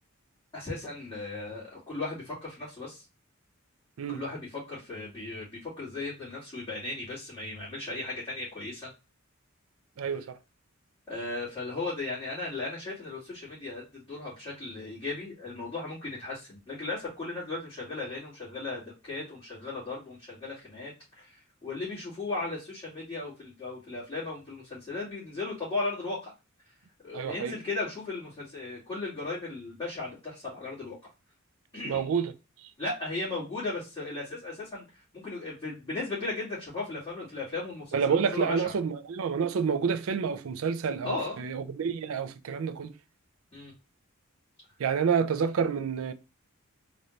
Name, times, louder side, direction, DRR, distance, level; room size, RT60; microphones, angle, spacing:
voice 1, 0.5-3.0 4.1-8.9 10.0-10.1 11.1-26.3 26.6-26.7 27.0-31.0 31.7-32.1 32.8-38.7 41.0-41.4 43.5-43.7, left 3 dB, 20° left, 2.2 m, -36 dB
voice 2, 10.0-10.4 27.1-27.6 31.8-32.3 37.9-42.9 44.8-46.1, right 6 dB, 70° right, 0.4 m, -28 dB
4.0 x 2.6 x 3.2 m
head